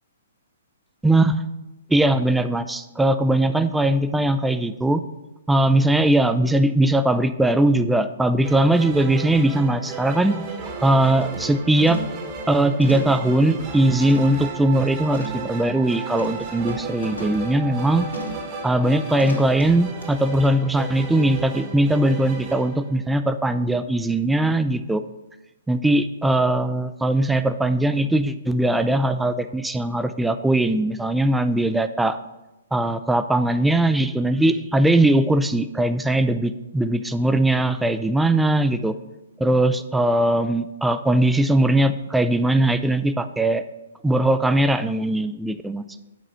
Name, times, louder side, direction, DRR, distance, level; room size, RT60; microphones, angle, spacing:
voice 1, 1.0-1.4 1.9-5.0 5.5-10.5 10.8-12.0 12.5-18.1 18.6-25.0 25.7-32.2 32.7-38.9 39.4-43.6 44.0-45.8, right 1 dB, 5° right, 11 dB, 0.3 m, -20 dB
sound 1, 8.4-23.4, right 4 dB, 35° right, 1.2 m, -35 dB
sound 2, 10.1-10.2 10.6-10.8 11.2-11.5 11.9-12.3 12.8-14.5 15.1-15.5 16.2-17.5 18.1-18.5 19.2-19.6 20.0-20.1, equal, 85° left, 1.7 m, -36 dB
7.7 x 4.9 x 5.6 m, 1.0 s
figure-of-eight pair, 120°, 0 cm